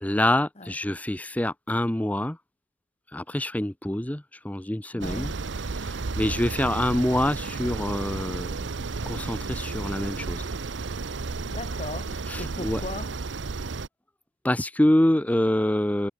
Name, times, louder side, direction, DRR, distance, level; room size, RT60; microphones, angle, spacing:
voice 1, 0.0-2.4 3.1-5.3 5.7-8.5 9.1-10.4 12.3-12.8 14.4-16.1, left 1 dB, 10° left, 0.6 m, -26 dB
voice 2, 4.9-5.4 11.5-13.2, left 2 dB, 35° left, 2.6 m, -38 dB
sound 1, 5.0-13.9, right 4 dB, 75° right, 0.8 m, -32 dB
head